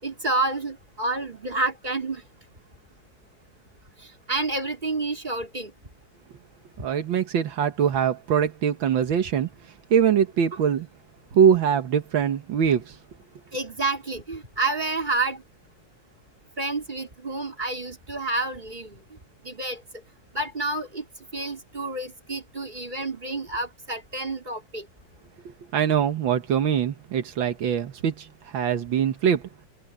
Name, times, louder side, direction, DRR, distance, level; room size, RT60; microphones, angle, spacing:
voice 1, 0.0-2.2 4.3-5.7 13.5-15.4 16.6-19.0 19.4-19.8 20.3-21.0 21.3-24.9, right 2 dB, 25° right, 4.1 m, -29 dB
voice 2, 6.8-9.5 9.9-10.9 11.3-13.0 25.7-29.4, right 8 dB, 85° right, 2.0 m, -23 dB
omnidirectional pair, 2.1 m